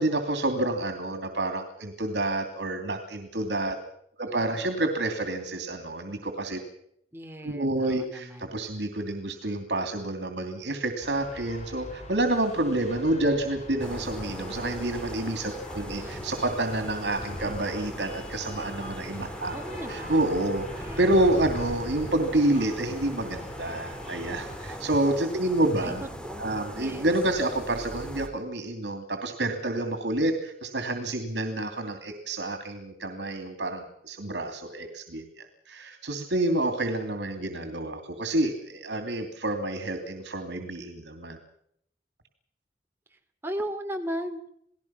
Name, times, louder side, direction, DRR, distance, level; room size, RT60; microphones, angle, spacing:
voice 1, 0.0-3.8 4.2-6.6 7.4-26.0 26.4-41.4, right 1 dB, 75° right, 6 dB, 2.8 m, -28 dB
voice 2, 4.2-4.7 7.1-8.5 16.0-16.4 19.5-20.3 20.8-21.2 25.8-25.9 26.2-27.1 43.1-44.4, equal, 15° right, 4 dB, 2.7 m, -37 dB
sound 1, 11.0-24.8, left 1 dB, 40° left, 4.7 m, -44 dB
sound 2, 13.8-28.3, equal, 5° left, 2.1 m, -39 dB
29.0 x 19.0 x 5.9 m, 0.70 s
head